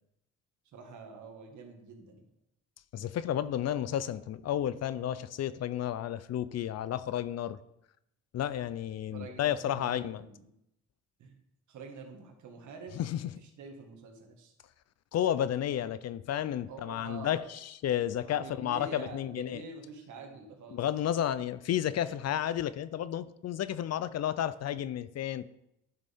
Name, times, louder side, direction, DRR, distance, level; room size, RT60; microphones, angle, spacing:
voice 1, 0.7-2.3 9.1-10.4 11.2-11.4 11.7-14.5 16.7-17.5 18.2-20.8, right 4 dB, 75° right, 3 dB, 2.0 m, -47 dB
voice 2, 2.9-7.6 8.3-10.2 13.0-13.2 15.1-19.6 20.7-25.5, left 11 dB, 55° left, 15 dB, 0.6 m, -32 dB
12.0 x 6.7 x 3.6 m, 0.81 s
cardioid pair, 90°, 30 cm